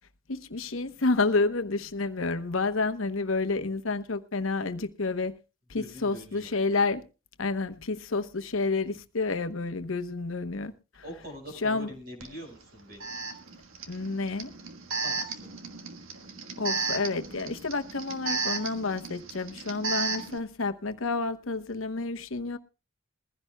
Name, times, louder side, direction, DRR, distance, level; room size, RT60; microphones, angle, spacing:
voice 1, 0.3-5.3 5.7-7.0 7.4-10.7 11.6-11.9 13.9-14.5 16.6-22.6, left 3 dB, 80° left, 1.0 m, -29 dB
voice 2, 5.7-6.5 11.0-13.1 15.0-15.5, equal, 45° right, 5.4 m, -43 dB
Alarm, 12.2-12.3 13.0-20.4, right 4 dB, 85° right, 1.5 m, -34 dB
21.0 x 15.5 x 2.3 m
head